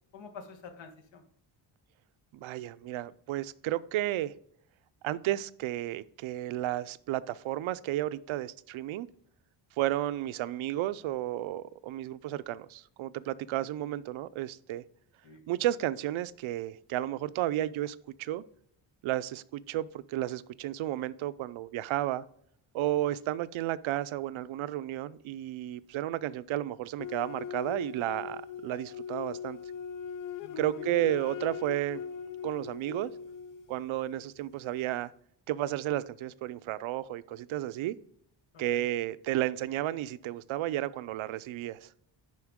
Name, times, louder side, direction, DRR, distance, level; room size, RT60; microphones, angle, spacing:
voice 1, 0.1-1.2 15.2-15.4 30.4-31.0 38.5-38.8, left 4 dB, 70° left, 1.6 m, -48 dB
voice 2, 2.3-4.3 5.0-9.1 9.8-14.8 15.5-18.4 19.0-22.2 22.7-29.6 30.6-32.0 32.4-33.1 33.7-35.1 35.5-38.0 38.6-41.9, right 14 dB, 85° right, 0.5 m, -32 dB
sound 1, 27.0-34.5, left 7 dB, 45° left, 0.5 m, -40 dB
10.5 x 4.4 x 3.6 m
wide cardioid pair, 150°, 47 cm